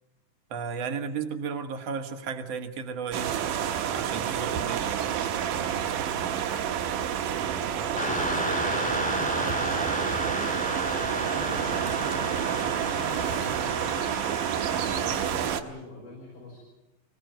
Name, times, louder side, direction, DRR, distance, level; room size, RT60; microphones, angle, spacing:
voice 1, 0.5-3.3 3.9-5.1 9.3-9.6, right 6 dB, 50° right, 6 dB, 2.4 m, -34 dB
sound 1, 3.1-15.6, right 9 dB, 70° right, 2.7 m, -29 dB
voice 2, 7.4-9.8 10.9-16.6, left 2 dB, 90° left, -3 dB, 7.5 m, -44 dB
sound 2, 8.0-15.5, right 1 dB, 5° left, 1.1 m, -32 dB
25.0 x 18.0 x 9.4 m, 0.99 s
omnidirectional pair, 4.2 m